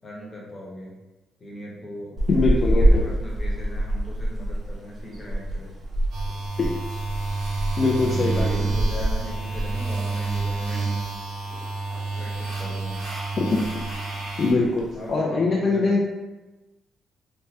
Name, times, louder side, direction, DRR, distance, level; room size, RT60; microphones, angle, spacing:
voice 1, 0.0-0.9 1.4-2.2 2.6-5.7 8.0-10.9 12.2-13.0 14.9-16.0, equal, 30° left, -3 dB, 1.0 m, -38 dB
sound 1, 2.2-10.7 10.9-11.2 11.5-12.4 12.7-13.1 13.3-13.4 13.6-14.1 14.6-15.1, right 1 dB, 40° right, 0.7 m, -26 dB
voice 2, 2.3-3.0 6.6-6.7 7.8-8.5 13.5-13.6 14.4-16.0, left 3 dB, 50° left, -3 dB, 0.4 m, -22 dB
sound 2, 6.1-14.5, right 3 dB, 65° right, 1.5 m, -29 dB
3.3 x 2.1 x 2.8 m, 1.1 s
supercardioid pair, 70°, 0 cm